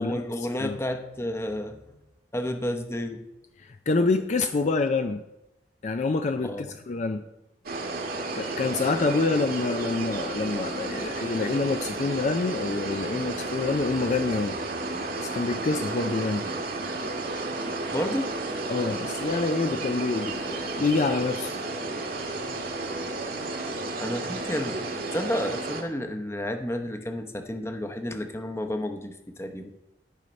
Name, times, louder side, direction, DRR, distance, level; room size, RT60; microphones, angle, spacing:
voice 1, 0.0-1.9 2.3-3.2 6.4-6.7 17.9-18.3 24.0-24.8 25.1-29.7, left 1 dB, 15° left, 6 dB, 0.8 m, -31 dB
voice 2, 3.6-5.2 5.8-7.3 8.4-14.6 15.2-16.5 18.7-21.5, left 3 dB, 40° left, 8 dB, 0.4 m, -27 dB
sound 1, 7.7-25.8, right 2 dB, 55° right, 1.4 m, -32 dB
12.5 x 5.6 x 5.2 m, 0.90 s
head